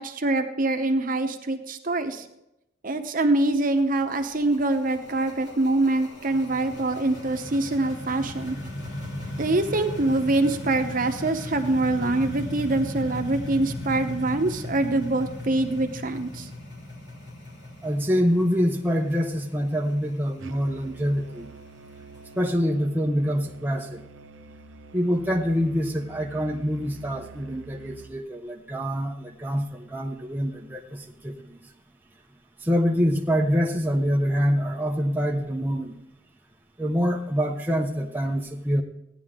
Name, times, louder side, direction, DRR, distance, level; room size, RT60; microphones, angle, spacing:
voice 1, 0.0-2.3 2.8-8.6 9.4-16.5, right 2 dB, 45° right, 7 dB, 0.9 m, -24 dB
sound 1, 3.6-22.3, left 1 dB, 60° left, 2.9 m, -37 dB
voice 2, 17.8-21.5 22.4-24.0 24.9-31.7 32.6-36.0 36.8-38.8, equal, 10° right, 0 dB, 0.6 m, -25 dB
Musical instrument, 20.4-28.2, right 4 dB, 90° right, 0.7 m, -47 dB
16.0 x 10.0 x 3.7 m, 0.86 s
head